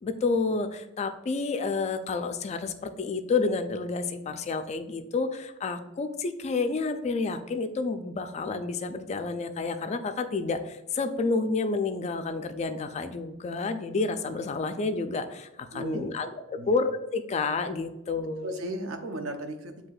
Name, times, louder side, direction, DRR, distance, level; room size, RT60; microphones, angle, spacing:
voice 1, 0.0-18.5, left 4 dB, 35° left, 8 dB, 0.3 m, -30 dB
voice 2, 15.7-16.1 16.6-16.7 18.4-19.9, right 1 dB, 75° right, 6 dB, 0.6 m, -35 dB
7.6 x 2.8 x 2.3 m, 0.93 s
head